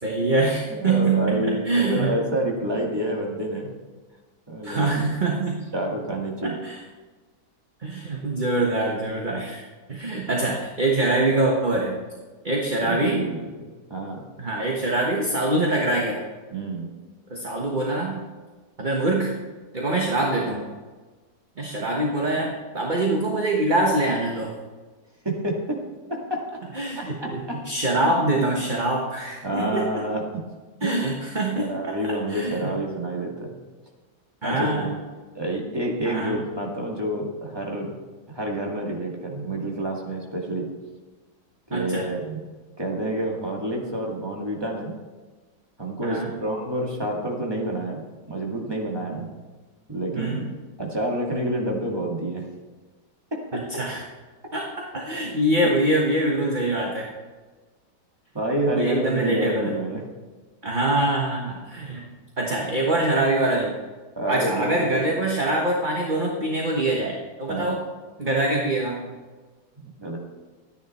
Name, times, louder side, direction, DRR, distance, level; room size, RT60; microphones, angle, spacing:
voice 1, 0.0-2.1 4.6-5.6 6.4-6.8 7.8-9.6 9.9-12.0 12.4-13.2 14.4-16.2 17.3-18.2 18.8-19.3 19.7-20.7 21.6-24.5 26.7-30.0 30.8-32.7 34.4-34.9 36.0-36.4 41.7-42.1 46.0-46.3 49.1-49.3 50.1-50.4 53.5-54.0 54.5-54.7 54.9-57.1 58.7-59.7 60.6-62.0 62.4-63.8 64.3-67.8 68.2-69.1, right 2 dB, 30° right, -1 dB, 1.4 m, -24 dB
voice 2, 0.7-3.7 4.5-5.0 5.7-6.5 12.8-14.3 16.5-16.9 22.3-22.4 25.2-25.8 26.1-26.4 27.0-27.3 28.0-28.5 29.4-30.2 30.8-31.0 31.6-33.6 34.4-34.9 35.3-37.9 38.3-40.6 41.7-42.4 42.8-44.9 45.8-48.0 48.3-49.3 49.9-50.4 50.8-52.4 53.3-53.4 55.6-55.8 58.3-60.0 64.2-65.0 67.5-67.8 69.8-70.2, right 1 dB, 15° right, -1 dB, 2.1 m, -28 dB
13.0 x 10.0 x 4.3 m, 1.3 s
omnidirectional pair, 1.8 m